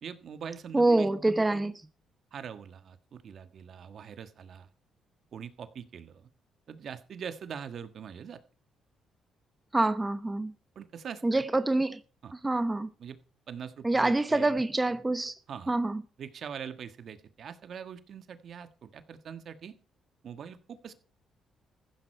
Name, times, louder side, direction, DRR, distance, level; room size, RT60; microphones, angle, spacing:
voice 1, 0.0-1.1 2.3-4.7 5.3-6.3 6.7-8.4 10.7-11.4 12.2-12.3 13.0-13.2 13.5-14.5 15.5-15.7 16.2-19.7 20.2-20.9, right 7 dB, 60° right, 1.4 m, -43 dB
voice 2, 0.7-1.7 9.7-10.5 11.2-12.0 12.4-12.9 13.8-15.3 15.7-16.0, right 2 dB, 15° right, 0.8 m, -26 dB
15.0 x 11.5 x 4.4 m
cardioid pair, 90°, 0 cm